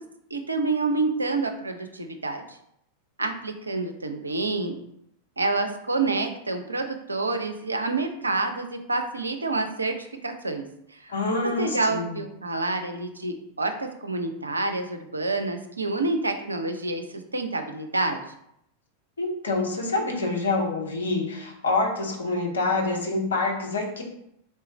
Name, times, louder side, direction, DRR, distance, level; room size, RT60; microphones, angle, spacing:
voice 1, 0.3-2.6 3.2-4.8 5.4-11.1 11.6-17.0 17.3-18.2, right 3 dB, 80° right, 6 dB, 0.5 m, -28 dB
voice 2, 11.1-12.2 19.2-24.0, left 3 dB, 70° left, 0 dB, 1.0 m, -26 dB
3.8 x 3.3 x 4.1 m, 0.75 s
figure-of-eight pair, 90°, 0 cm